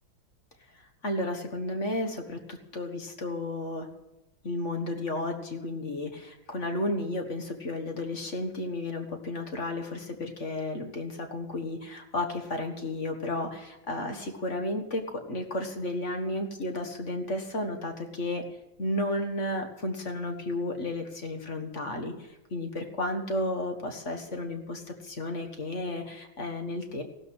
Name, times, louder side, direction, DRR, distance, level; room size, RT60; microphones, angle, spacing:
voice 1, 1.0-3.9 4.4-18.4 18.8-22.1 22.5-27.0, left 1 dB, 35° left, 5 dB, 1.7 m, -33 dB
16.0 x 12.5 x 6.4 m, 0.93 s
omnidirectional pair, 2.3 m